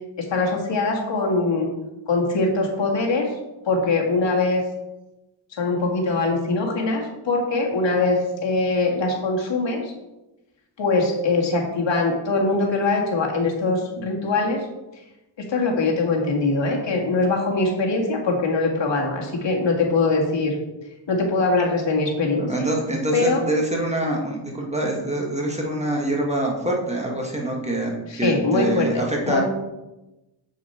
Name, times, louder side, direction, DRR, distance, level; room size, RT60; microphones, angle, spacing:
voice 1, 0.2-1.7 2.1-3.3 3.7-4.6 5.6-9.9 10.8-14.7 15.4-20.6 21.1-22.5 23.1-23.4 28.1-28.9 29.3-29.4, left 3 dB, 65° left, -1 dB, 2.0 m, -22 dB
voice 2, 22.4-29.4, right 1 dB, 15° right, -1 dB, 1.7 m, -25 dB
7.3 x 7.1 x 4.4 m, 1.0 s
wide cardioid pair, 110°, 48 cm